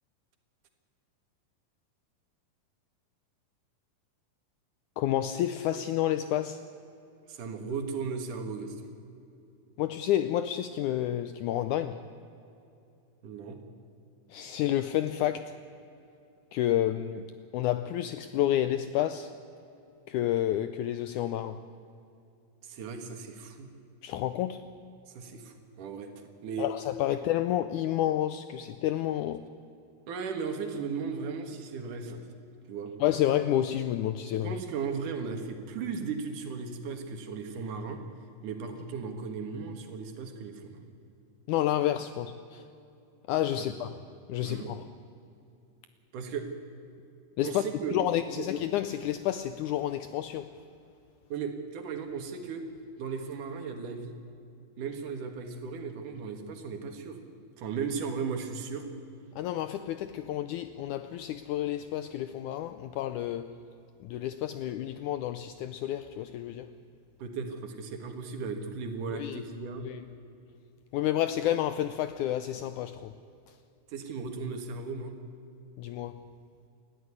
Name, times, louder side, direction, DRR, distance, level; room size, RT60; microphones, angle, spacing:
voice 1, 5.0-6.6 9.8-12.0 14.3-15.5 16.5-19.3 20.1-21.6 24.0-24.6 26.6-29.5 33.0-34.5 41.5-42.6 43.3-44.0 44.3-44.9 47.4-47.6 47.9-50.5 59.4-63.6 64.0-66.7 69.1-69.4 69.8-70.0 70.9-73.1 75.8-76.2, left 12 dB, 85° left, 1.8 m, -30 dB
voice 2, 7.3-8.9 13.2-13.6 22.6-23.7 25.1-26.1 26.4-26.7 30.1-32.3 32.7-32.9 34.4-38.0 38.4-40.8 43.5-43.9 44.4-44.8 46.1-46.5 47.4-47.9 48.3-48.5 51.3-52.7 53.0-54.1 54.8-57.2 57.6-58.9 67.2-69.8 73.9-75.1, right 5 dB, 65° right, 3.1 m, -36 dB
19.5 x 14.0 x 9.6 m
omnidirectional pair, 4.1 m